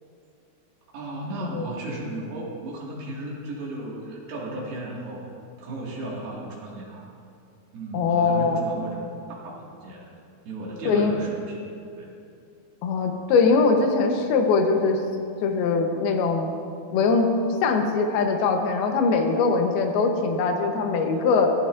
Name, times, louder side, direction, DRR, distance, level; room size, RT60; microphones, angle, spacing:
voice 1, 0.9-5.3 5.6-7.0 7.7-10.0 10.4-11.7 12.0-12.1, right 2 dB, 60° right, -4 dB, 3.8 m, -35 dB
voice 2, 7.9-8.6 10.9-11.1 12.8-15.0 15.4-16.5 16.9-17.3 17.6-21.5, left 4 dB, 70° left, 3 dB, 2.6 m, -21 dB
15.5 x 14.5 x 2.6 m, 2.4 s
omnidirectional pair, 5.2 m